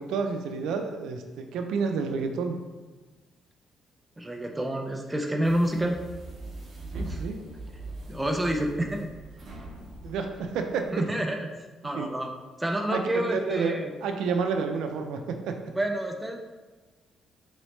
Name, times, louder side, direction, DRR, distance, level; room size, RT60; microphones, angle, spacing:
voice 1, 0.0-2.6 6.9-7.4 10.0-11.1 11.9-12.1 12.9-15.6, right 5 dB, 90° right, 5 dB, 0.4 m, -30 dB
voice 2, 4.2-6.0 7.1-7.2 8.1-9.1 10.9-11.5 11.8-12.3 12.6-13.9 15.8-16.4, right 1 dB, 5° right, 2 dB, 0.3 m, -28 dB
sound 1, 5.4-11.0, right 2 dB, 40° right, 0.7 m, -41 dB
3.8 x 3.1 x 3.1 m, 1.3 s
cardioid pair, 165°, 0 cm